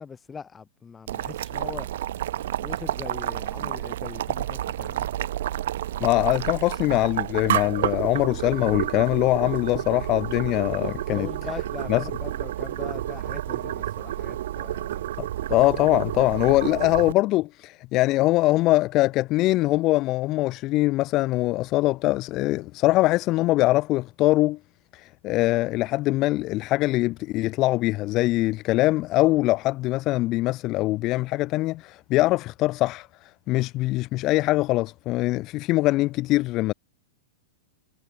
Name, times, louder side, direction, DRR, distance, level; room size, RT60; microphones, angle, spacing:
voice 1, 0.0-1.9 2.6-5.1 11.1-15.1, left 6 dB, 15° left, 6.9 m, -41 dB
Boiling, 1.1-17.1, right 12 dB, 60° right, 1.8 m, -30 dB
voice 2, 6.0-11.3 11.9-12.1 15.2-24.6 24.9-36.7, left 18 dB, 35° left, 0.6 m, -23 dB
figure-of-eight pair, 100°, 0 cm